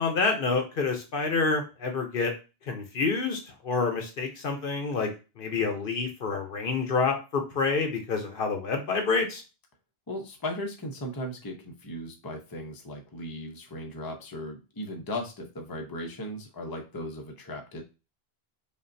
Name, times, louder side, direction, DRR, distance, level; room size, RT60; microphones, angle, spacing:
voice 1, 0.0-2.3 2.7-5.1 5.4-9.4, left 4 dB, 60° left, 4 dB, 0.9 m, -28 dB
voice 2, 10.1-17.8, left 1 dB, 25° left, 2 dB, 0.7 m, -37 dB
5.2 x 2.4 x 2.6 m, 0.30 s
omnidirectional pair, 1.0 m